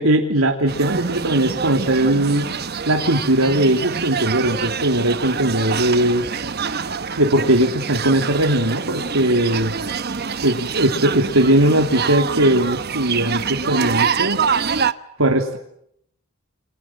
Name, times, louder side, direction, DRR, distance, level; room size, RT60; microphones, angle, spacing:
voice 1, 0.0-2.5 2.8-6.2 7.2-9.7 10.4-14.4 15.2-15.6, right 1 dB, 85° right, 2 dB, 3.1 m, -19 dB
sound 1, 0.7-14.9, right 6 dB, 50° right, 1.1 m, -25 dB
29.5 x 26.5 x 7.5 m, 0.72 s
head